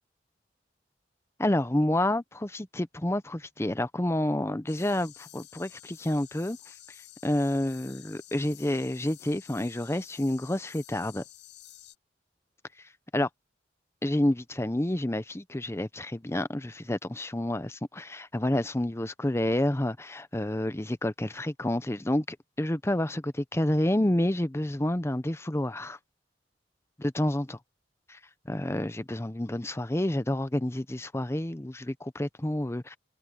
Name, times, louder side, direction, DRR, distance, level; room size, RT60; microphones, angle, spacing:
voice 1, 1.4-6.7 7.2-11.2 13.1-13.3 14.0-26.0 27.0-27.6 28.1-28.2 28.5-33.0, left 1 dB, 15° left, 0.7 m, -29 dB
sound 1, 4.7-12.0, left 13 dB, 75° left, 7.7 m, -51 dB
head